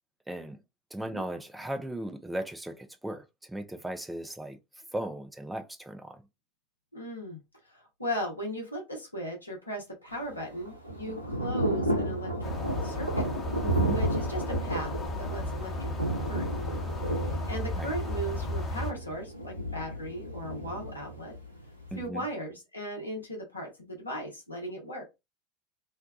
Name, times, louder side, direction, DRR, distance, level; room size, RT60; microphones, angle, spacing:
voice 1, 0.3-0.6 0.9-4.6 4.9-6.2 13.6-14.0 17.8-17.9 21.9-22.2, right 1 dB, 5° right, 0.4 m, -37 dB
voice 2, 6.9-7.4 7.7-13.2 13.8-16.8 17.2-21.3 22.0-25.1, equal, 85° left, 0.8 m, -37 dB
Thunder / Rain, 10.1-22.1, right 1 dB, 90° right, 0.5 m, -33 dB
sound 1, 12.4-18.9, left 2 dB, 25° left, 0.8 m, -34 dB
2.6 x 2.1 x 2.4 m
figure-of-eight pair, 75°, 0 cm